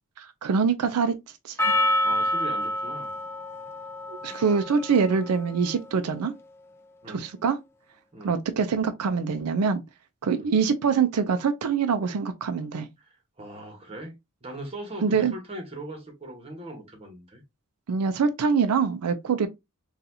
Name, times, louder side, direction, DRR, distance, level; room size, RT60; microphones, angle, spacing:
voice 1, 0.2-1.2 1.4-1.6 4.1-6.3 7.1-7.6 8.2-9.8 10.2-12.9 15.0-15.3 17.9-19.5, right 5 dB, 85° right, 0.4 m, -24 dB
Percussion, 1.6-6.2, left 1 dB, 10° left, 0.4 m, -28 dB
voice 2, 1.7-3.1 7.0-7.2 8.1-8.3 10.3-10.5 13.4-14.1 14.4-17.4, right 1 dB, 25° right, 1.1 m, -40 dB
4.0 x 2.4 x 2.7 m
head